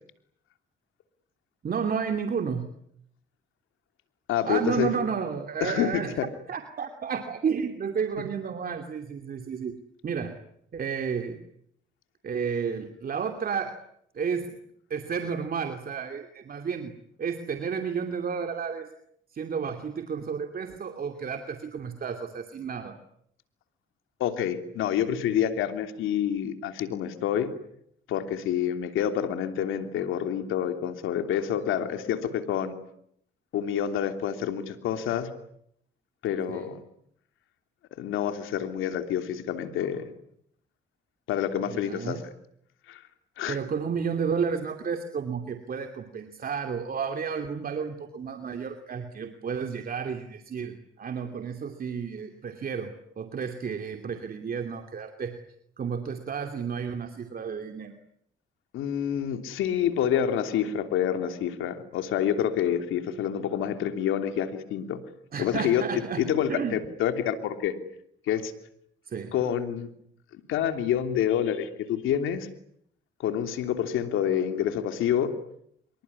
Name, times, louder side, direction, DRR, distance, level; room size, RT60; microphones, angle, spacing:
voice 1, 1.6-2.7 4.4-6.1 6.5-9.8 10.0-10.4 10.7-11.4 12.2-13.8 14.1-14.6 14.9-16.9 17.2-18.9 19.3-23.0 36.5-36.7 41.7-42.2 43.5-55.4 55.8-57.9 65.3-66.8 69.1-69.3, right 6 dB, 50° right, 6 dB, 2.7 m, -32 dB
voice 2, 4.3-5.0 5.6-6.3 24.2-27.5 28.1-32.7 33.5-35.3 36.2-36.8 38.0-40.1 41.3-42.2 42.9-43.0 43.4-43.6 58.7-65.0 65.4-65.8 66.2-67.7 68.3-68.5 69.3-69.9 70.5-72.5 73.2-75.3, left 9 dB, 85° left, 8 dB, 3.1 m, -27 dB
26.0 x 23.0 x 9.8 m, 0.72 s
cardioid pair, 90°, 20 cm